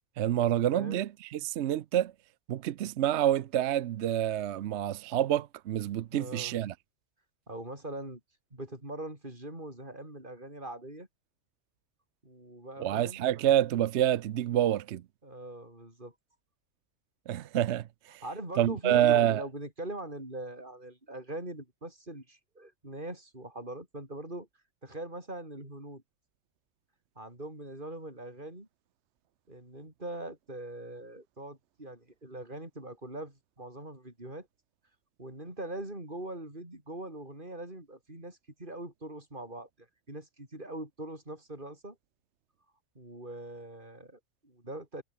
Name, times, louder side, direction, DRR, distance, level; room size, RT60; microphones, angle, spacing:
voice 1, 0.2-2.1 2.5-6.7 12.8-15.0 17.3-18.2 18.6-19.4, right 11 dB, 60° right, 0.8 m, -27 dB
voice 2, 6.1-6.6 7.5-8.2 8.5-11.1 12.2-13.3 15.2-16.1 18.2-24.5 24.8-26.0 27.2-28.7 29.5-34.5 35.2-42.0 43.0-45.0, right 1 dB, 35° right, 7.0 m, -42 dB
omnidirectional pair, 1.4 m